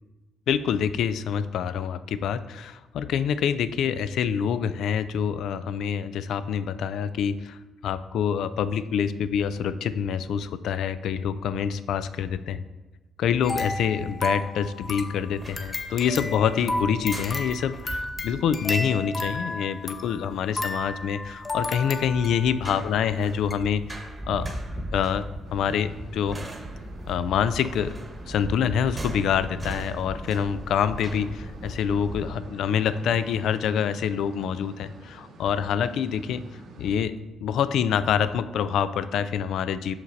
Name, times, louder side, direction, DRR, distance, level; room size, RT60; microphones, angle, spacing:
voice 1, 0.5-12.6 13.2-24.5 24.9-25.2 25.5-26.4 27.1-27.9 28.3-36.4 36.8-37.1 37.4-39.9, left 8 dB, 75° left, 13 dB, 0.3 m, -26 dB
sound 1, 13.4-22.6 23.1-23.2 23.5-23.6, left 2 dB, 25° left, 0.6 m, -33 dB
sound 2, 15.2-32.3, right 1 dB, 20° right, 1.0 m, -39 dB
sound 3, 25.4-37.0, right 2 dB, 70° right, 1.1 m, -46 dB
5.8 x 5.7 x 3.9 m, 1.1 s
cardioid pair, 90°, 0 cm